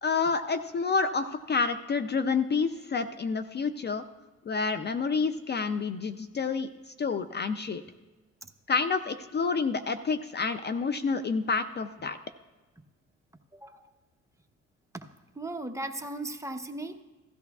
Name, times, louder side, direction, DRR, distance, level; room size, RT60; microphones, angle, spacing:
voice 1, 0.0-4.0 4.5-7.8 8.7-12.2, left 4 dB, 35° left, 10 dB, 0.5 m, -29 dB
voice 2, 15.4-17.0, right 2 dB, 10° right, 5 dB, 0.8 m, -37 dB
16.5 x 13.0 x 2.4 m, 1.2 s
cardioid pair, 90°, 30 cm